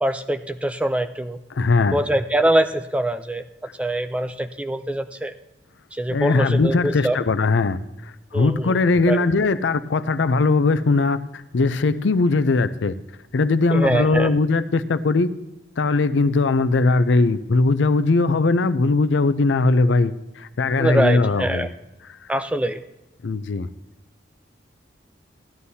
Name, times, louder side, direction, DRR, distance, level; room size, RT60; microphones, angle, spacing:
voice 1, 0.0-1.4 1.9-3.4 3.8-5.3 5.9-7.2 8.3-8.8 9.1-9.2 13.7-14.3 20.8-21.7 22.3-22.8, right 1 dB, 5° right, 7 dB, 0.4 m, -23 dB
voice 2, 1.5-2.0 6.1-12.9 13.3-15.3 15.8-21.7 23.2-23.7, left 3 dB, 90° left, 13 dB, 0.5 m, -20 dB
15.0 x 11.5 x 2.8 m, 0.96 s
head